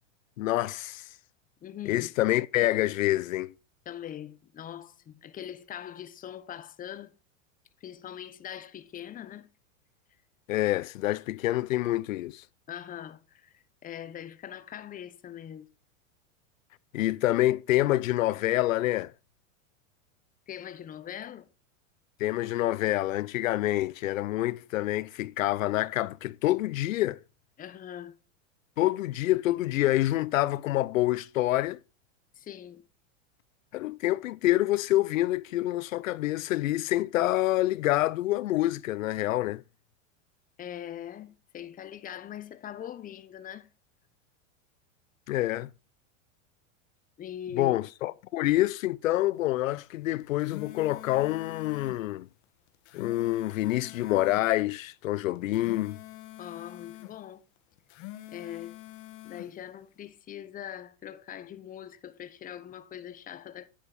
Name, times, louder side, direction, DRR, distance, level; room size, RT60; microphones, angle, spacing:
voice 1, 0.4-1.0 1.9-3.5 10.5-12.4 16.9-19.1 22.2-27.2 28.8-31.8 33.7-39.6 45.3-45.7 47.6-52.3 52.9-56.0, left 16 dB, 90° left, 0.6 m, -27 dB
voice 2, 1.6-2.1 3.9-7.1 7.8-9.5 12.7-15.7 20.5-21.5 27.6-28.2 32.4-32.8 40.6-43.7 47.2-48.1 56.4-57.4 58.3-58.8 59.2-63.7, left 10 dB, 20° left, 0.9 m, -42 dB
sound 1, 50.2-52.0 52.7-54.5 55.4-57.2 57.8-59.5, left 15 dB, 50° left, 1.5 m, -45 dB
10.5 x 6.8 x 4.2 m
supercardioid pair, 125°, 39 cm